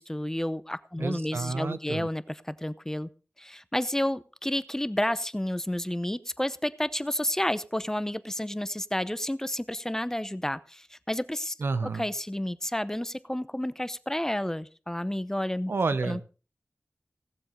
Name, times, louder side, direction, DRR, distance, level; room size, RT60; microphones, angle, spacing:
voice 1, 0.0-3.1 3.4-11.5 11.9-15.7 16.0-16.2, left 1 dB, 10° left, 15 dB, 0.8 m, -31 dB
voice 2, 1.0-2.1 11.6-12.1 15.7-16.2, right 4 dB, 70° right, 13 dB, 0.9 m, -30 dB
17.0 x 7.6 x 5.4 m, 0.36 s
wide cardioid pair, 80°, 4 cm